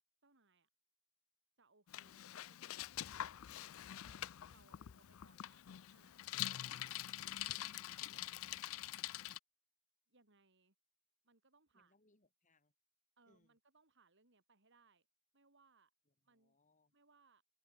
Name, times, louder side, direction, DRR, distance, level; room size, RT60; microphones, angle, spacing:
voice 1, 0.2-0.7 1.6-3.0 4.0-5.6 5.9-6.2 6.7-8.5 10.1-10.7 11.2-11.9 13.2-15.1 15.3-15.9 16.2-16.6 16.9-17.4, right 3 dB, 55° right, 4.5 m, -72 dB
Bicycle, 1.9-9.4, left 13 dB, 65° left, 0.4 m, -45 dB
voice 2, 11.7-12.7 13.3-13.6 16.1-16.9, left 1 dB, 35° left, 5.5 m, -76 dB
head